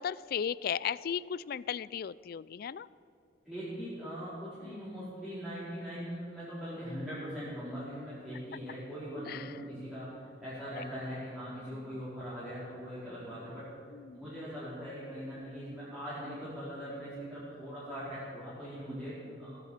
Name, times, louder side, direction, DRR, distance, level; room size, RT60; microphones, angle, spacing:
voice 1, 0.0-2.9 4.6-4.8 9.3-9.5 10.8-10.9 11.7-11.8 13.9-14.2, left 8 dB, 55° left, 20 dB, 0.3 m, -36 dB
voice 2, 3.4-13.7 14.1-19.6, equal, 5° right, -13 dB, 4.5 m, -41 dB
18.0 x 10.0 x 7.3 m, 2.4 s
head